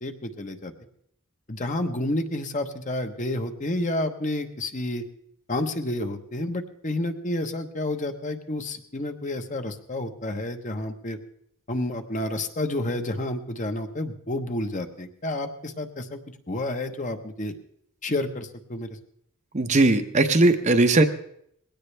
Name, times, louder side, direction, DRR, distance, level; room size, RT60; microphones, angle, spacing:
voice 1, 0.0-0.7 1.5-5.0 5.5-11.2 11.7-16.2 16.5-17.5 18.0-18.9, left 1 dB, 35° left, 6 dB, 1.1 m, -30 dB
voice 2, 19.5-21.0, right 2 dB, 35° right, 7 dB, 0.8 m, -19 dB
20.5 x 17.0 x 3.4 m, 0.70 s
head